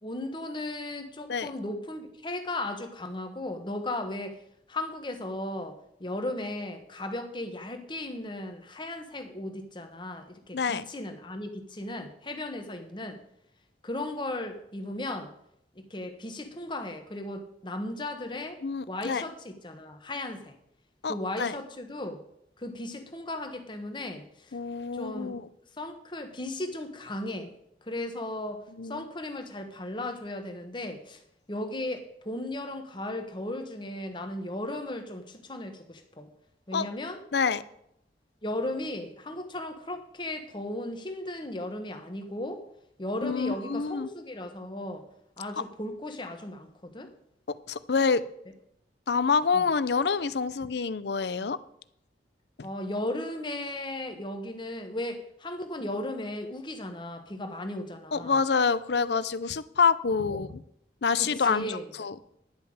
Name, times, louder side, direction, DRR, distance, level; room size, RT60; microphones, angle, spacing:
voice 1, 0.0-4.4 4.7-13.2 13.8-15.3 15.8-18.6 18.9-20.5 21.1-22.2 22.6-24.6 24.9-25.4 25.8-27.5 27.8-28.6 28.9-31.2 31.5-36.3 36.7-37.2 38.4-42.6 43.0-45.0 45.4-47.1 49.5-49.6 52.6-58.3 60.3-60.4 61.2-61.8, left 1 dB, 25° left, 6 dB, 1.3 m, -36 dB
voice 2, 10.5-10.8 18.6-19.2 21.0-21.5 24.5-25.5 28.8-29.0 36.7-36.9 37.3-37.6 43.2-44.1 45.6-45.7 47.5-48.2 49.1-51.6 52.6-52.7 58.1-60.6 61.0-62.4, left 5 dB, 70° left, 16 dB, 0.6 m, -27 dB
10.5 x 5.7 x 8.7 m, 0.74 s
head